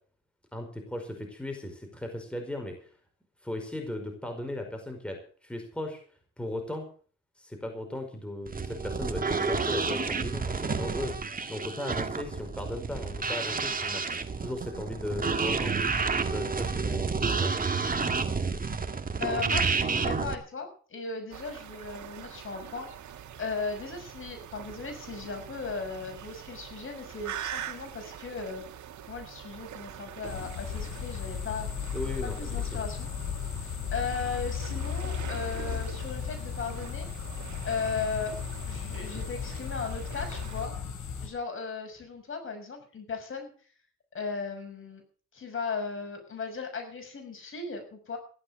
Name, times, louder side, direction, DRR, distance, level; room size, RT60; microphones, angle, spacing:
voice 1, 0.5-2.7 3.4-6.0 6.4-6.9 7.4-15.8 16.2-17.6 31.9-32.4 32.7-32.8, left 1 dB, 5° left, 3 dB, 5.2 m, -37 dB
sound 1, 8.5-20.3, right 4 dB, 30° right, 2.0 m, -30 dB
voice 2, 19.2-22.9 23.4-28.6 29.1-31.7 32.2-33.1 33.6-37.1 37.6-38.3 38.7-40.7 41.2-43.5 44.1-45.0 45.3-48.2, left 4 dB, 45° left, 4 dB, 6.3 m, -36 dB
sound 2, 21.3-40.7, right 10 dB, 70° right, 2.3 m, -44 dB
sound 3, 30.2-41.3, left 8 dB, 70° left, 7.7 m, -35 dB
15.0 x 11.5 x 6.6 m, 0.43 s
cardioid pair, 90°, 30 cm